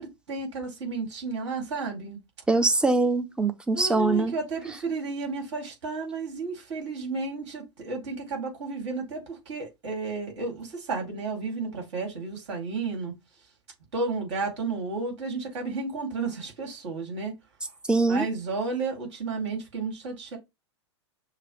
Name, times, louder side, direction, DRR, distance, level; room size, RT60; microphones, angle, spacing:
voice 1, 0.0-2.2 3.7-13.1 13.9-17.3 18.1-20.4, right 4 dB, 65° right, 2.6 m, -32 dB
voice 2, 2.5-4.3 17.9-18.3, right 3 dB, 5° right, 0.6 m, -23 dB
6.6 x 2.3 x 3.1 m
figure-of-eight pair, 100°, 16 cm